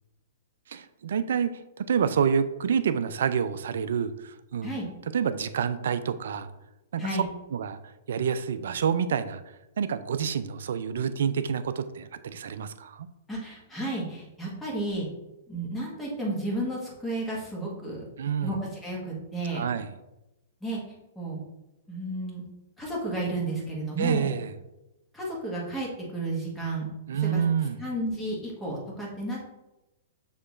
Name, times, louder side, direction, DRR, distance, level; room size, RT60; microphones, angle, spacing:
voice 1, 0.7-4.7 5.1-6.5 6.9-7.2 7.5-7.8 8.1-9.4 9.8-13.1 18.2-18.6 19.5-19.9 24.0-24.5 27.1-27.9, right 7 dB, 70° right, 12 dB, 0.3 m, -28 dB
voice 2, 13.3-15.1 15.5-18.0 18.4-19.6 20.6-20.8 21.1-21.4 21.9-22.4 22.8-24.3 25.1-26.9 27.2-27.4 27.8-29.4, right 1 dB, 10° left, -4 dB, 1.4 m, -32 dB
6.4 x 2.9 x 2.5 m, 0.98 s
hypercardioid pair, 120°, 0 cm